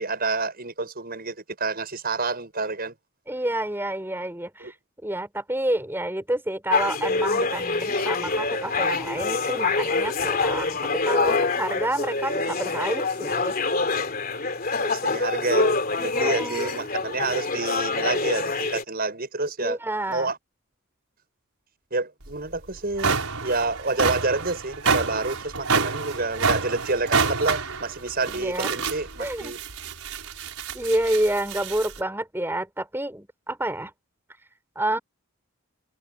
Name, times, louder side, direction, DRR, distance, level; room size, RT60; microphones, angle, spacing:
voice 1, 0.0-2.9 4.6-4.7 14.8-19.8 20.1-20.4 21.9-29.6, right 3 dB, 45° right, 7.2 m, -28 dB
voice 2, 3.3-4.7 5.0-13.6 16.1-16.8 19.6-20.3 28.4-28.8 29.2-29.5 30.7-33.9 34.8-35.0, right 1 dB, 10° right, 5.2 m, -29 dB
sound 1, 6.7-18.8, left 3 dB, 45° left, 3.1 m, -25 dB
sound 2, 22.3-22.4 22.8-32.0, right 5 dB, 85° right, 5.3 m, -28 dB
head